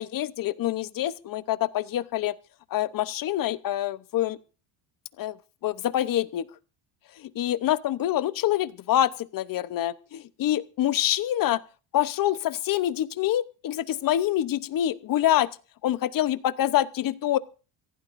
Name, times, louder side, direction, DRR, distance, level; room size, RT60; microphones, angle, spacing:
voice 1, 0.0-2.4 2.7-4.4 5.2-5.4 5.6-6.4 7.2-11.6 11.9-15.5 15.8-17.4, left 12 dB, 45° left, 16 dB, 0.8 m, -26 dB
25.0 x 16.0 x 2.6 m, 0.36 s
cardioid pair, 125°, 48 cm